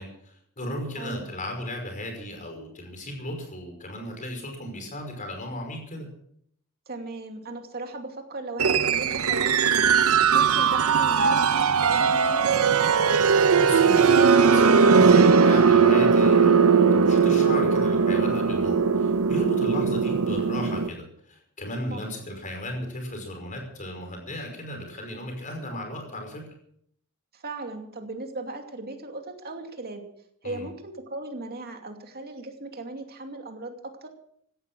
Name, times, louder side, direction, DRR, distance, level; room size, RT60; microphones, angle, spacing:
voice 1, 0.0-6.1 13.6-26.5 30.4-30.7, equal, 40° left, 3 dB, 5.5 m, -35 dB
voice 2, 6.9-9.9 10.3-12.9 21.9-22.0 27.3-30.0 30.4-34.1, right 2 dB, 50° right, 4 dB, 2.6 m, -37 dB
sound 1, 8.6-20.9, right 5 dB, 85° right, 0.8 m, -19 dB
16.5 x 12.5 x 6.3 m, 0.67 s
head